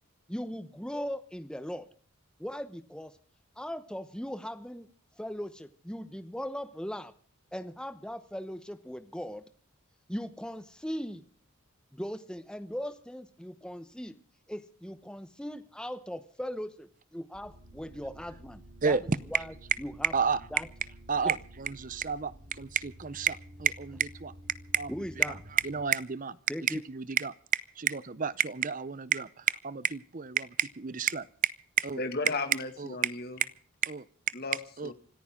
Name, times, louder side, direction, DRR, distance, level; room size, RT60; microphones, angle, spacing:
voice 1, 0.3-1.9 2.4-3.1 3.6-4.9 5.2-7.1 7.5-9.4 10.1-11.2 11.9-14.2 14.5-19.0 19.3-20.1 20.5-20.7 21.2-21.3 24.9-25.4 26.5-26.8, equal, 5° left, 10 dB, 0.9 m, -39 dB
sound 1, 17.3-25.9, equal, 55° right, 5.6 m, -51 dB
voice 2, 18.8-19.2 20.1-20.4 21.1-24.3 24.7-24.9 25.2-25.3 25.6-26.4 26.7-31.3 31.8-32.0 32.8-32.9 33.8-34.0 34.8-34.9, right 6 dB, 40° right, 17 dB, 0.7 m, -31 dB
voice 3, 31.9-33.4 34.3-34.9, left 3 dB, 45° left, 8 dB, 2.1 m, -35 dB
25.5 x 14.0 x 3.7 m, 0.43 s
head